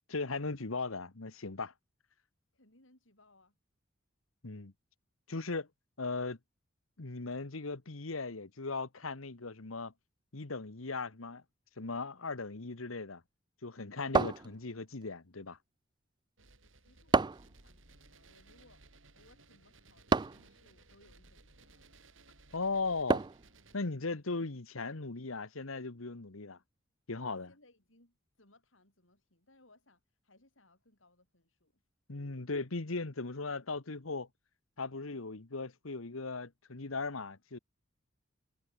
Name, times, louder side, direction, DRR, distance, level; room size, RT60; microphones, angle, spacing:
voice 1, 0.1-1.7 4.4-4.7 5.3-5.7 6.0-6.4 7.0-9.9 10.3-11.4 11.8-13.2 13.6-15.6 22.5-23.3 23.7-26.6 27.1-27.5 32.1-34.3 34.8-37.6, left 3 dB, 90° left, 1.4 m, -38 dB
voice 2, 2.5-3.6 16.7-18.8 19.1-21.8 27.3-31.8, left 2 dB, 70° left, 7.7 m, -66 dB
sound 1, 14.1-15.0 17.1-17.6 20.1-20.5 23.1-23.5, right 3 dB, 20° right, 0.4 m, -29 dB
sound 2, 16.4-23.7, right 3 dB, 70° right, 5.8 m, -60 dB
head